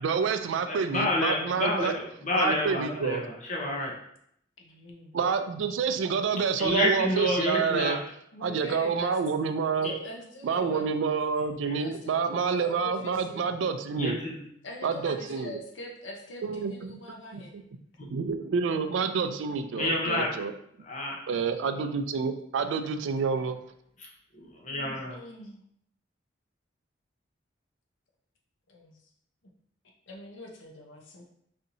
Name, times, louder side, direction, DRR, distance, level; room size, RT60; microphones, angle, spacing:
voice 1, 0.0-1.9 2.3-3.2 5.1-8.0 8.4-9.9 10.4-14.2 14.8-15.6 16.4-17.0 17.3-17.4 18.0-20.5 21.3-23.6, right 5 dB, 85° right, 9 dB, 0.3 m, -28 dB
voice 2, 0.7-3.9 6.6-8.0 9.8-9.9 14.0-14.4 18.0-18.1 19.7-20.3 20.8-21.2 24.3-25.2, left 1 dB, 40° left, -1 dB, 0.7 m, -29 dB
voice 3, 4.6-5.1 8.3-9.5 9.8-11.1 11.8-13.6 14.6-17.5 25.1-25.6 28.7-29.0 30.1-31.2, left 1 dB, 85° left, 0 dB, 0.7 m, -43 dB
4.2 x 2.7 x 2.6 m, 0.70 s
head